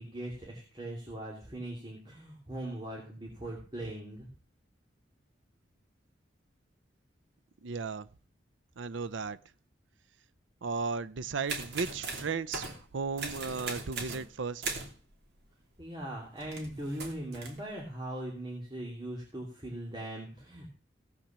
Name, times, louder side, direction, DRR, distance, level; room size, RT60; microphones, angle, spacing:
voice 1, 0.0-4.3 15.8-20.7, right 1 dB, 25° right, 2.9 m, -40 dB
voice 2, 7.6-8.1 8.8-9.4 10.6-12.7 12.9-14.6, right 4 dB, 80° right, 0.6 m, -35 dB
sound 1, 11.5-12.8 13.2-14.3 14.6-15.0 16.4-17.6, right 3 dB, 55° right, 2.9 m, -38 dB
17.5 x 6.0 x 7.4 m
head